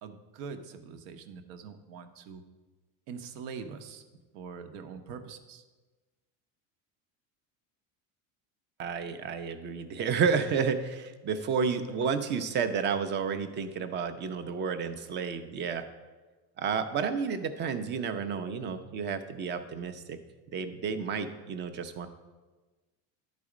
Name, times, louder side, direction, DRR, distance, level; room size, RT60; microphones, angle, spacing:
voice 1, 0.0-2.4 3.1-4.0 4.3-5.6, right 5 dB, 75° right, 7 dB, 0.9 m, -43 dB
voice 2, 8.8-15.9 16.6-20.2 20.5-22.1, right 6 dB, 25° right, 9 dB, 0.5 m, -31 dB
11.5 x 4.1 x 4.9 m, 1.3 s
cardioid pair, 145°, 41 cm